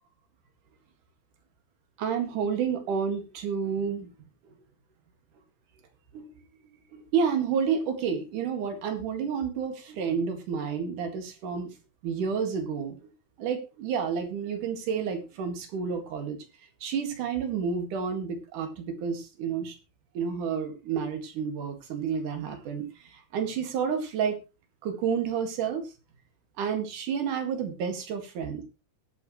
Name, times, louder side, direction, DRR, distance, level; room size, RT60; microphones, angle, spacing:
voice 1, 2.0-4.1 6.1-6.4 6.9-11.7 12.0-13.0 13.4-16.4 16.8-19.8 20.1-24.4 24.8-25.9 26.6-28.6, right 6 dB, 60° right, 5 dB, 3.3 m, -30 dB
21.0 x 7.1 x 3.2 m, 0.29 s
omnidirectional pair, 4.4 m